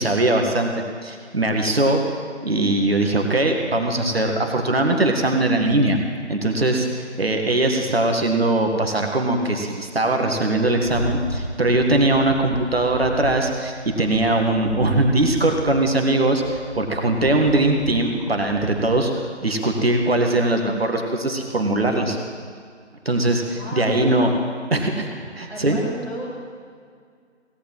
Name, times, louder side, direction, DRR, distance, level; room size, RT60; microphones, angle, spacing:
voice 1, 0.0-2.2 2.4-6.0 6.3-22.2 23.1-24.3 24.7-25.8, right 2 dB, 55° right, 3 dB, 1.8 m, -21 dB
Rattle, 10.7-19.1, equal, 25° left, 0.6 m, -34 dB
voice 2, 23.6-24.2 25.5-26.3, equal, 5° left, -12 dB, 2.2 m, -33 dB
17.0 x 9.3 x 7.7 m, 2.1 s
figure-of-eight pair, 155°, 35 cm